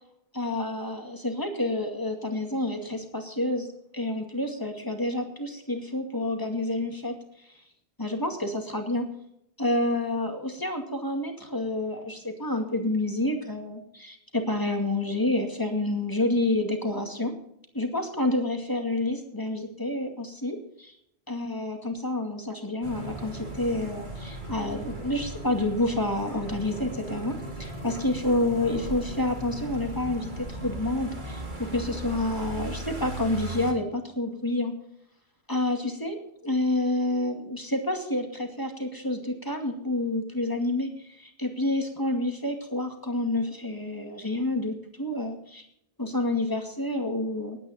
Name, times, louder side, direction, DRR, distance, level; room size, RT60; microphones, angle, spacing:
voice 1, 0.3-3.7 3.9-7.2 8.0-9.1 9.6-17.3 17.7-20.9 21.3-34.7 35.5-45.7 46.0-47.6, left 2 dB, 20° left, 4 dB, 2.3 m, -29 dB
sound 1, 22.8-33.7, right 1 dB, 50° right, 3.0 m, -37 dB
19.0 x 9.6 x 4.3 m, 0.72 s
omnidirectional pair, 1.0 m